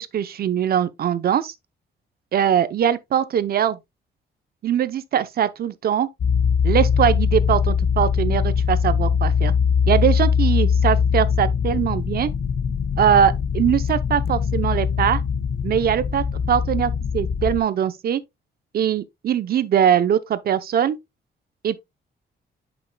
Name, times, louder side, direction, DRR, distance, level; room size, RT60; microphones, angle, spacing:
voice 1, 0.0-1.5 2.3-3.8 4.6-6.1 6.6-9.5 9.9-12.3 13.0-15.2 15.6-18.2 18.7-21.0 21.6-21.8, right 9 dB, 60° right, 0.7 m, -21 dB
sound 1, 6.2-17.6, left 6 dB, 55° left, 1.1 m, -21 dB
8.2 x 6.1 x 2.2 m
cardioid pair, 130°, 18 cm